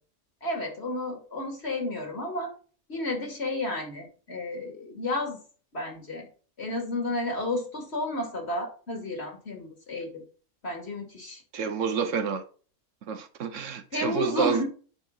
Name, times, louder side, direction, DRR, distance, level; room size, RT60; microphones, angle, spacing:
voice 1, 0.4-2.5 2.9-5.4 5.7-6.3 6.6-10.2 10.6-11.4 13.9-14.6, left 2 dB, 60° left, 3.0 m, -32 dB
voice 2, 11.5-12.4 13.1-14.6, right 6 dB, 80° right, 1.3 m, -29 dB
10.0 x 4.9 x 4.0 m
omnidirectional pair, 1.3 m